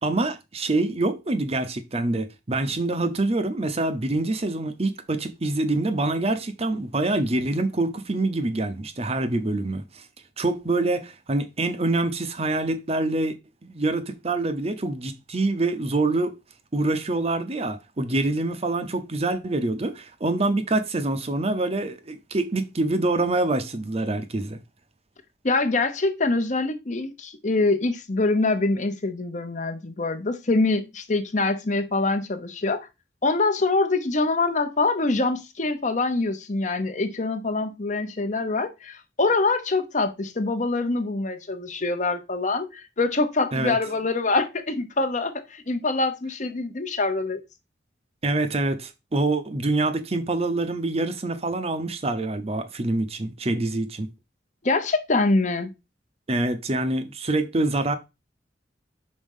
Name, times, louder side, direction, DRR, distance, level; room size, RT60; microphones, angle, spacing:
voice 1, 0.0-10.0 10.4-13.4 13.6-16.4 16.7-24.6 43.5-43.8 48.2-54.1 56.3-58.0, right 2 dB, 35° right, 0.7 m, -25 dB
voice 2, 25.4-32.9 33.2-47.4 54.6-55.7, left 3 dB, 45° left, 0.9 m, -24 dB
5.3 x 4.2 x 5.5 m
head